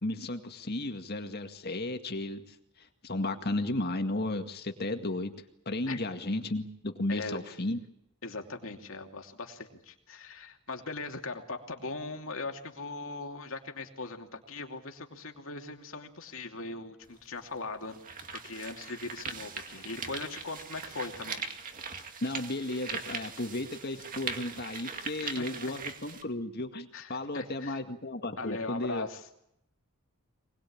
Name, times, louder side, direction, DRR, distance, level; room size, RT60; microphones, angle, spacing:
voice 1, 0.0-5.3 5.7-7.8 22.2-29.1, left 2 dB, 45° left, 6 dB, 2.1 m, -34 dB
voice 2, 7.1-7.4 8.2-18.0 18.4-21.4 25.2-25.7 26.9-27.8 28.4-29.3, left 3 dB, 65° left, 4 dB, 2.8 m, -40 dB
sound 1, 17.0-17.1 17.7-26.2, right 5 dB, 40° right, 2.3 m, -40 dB
24.5 x 20.0 x 8.8 m, 0.77 s
head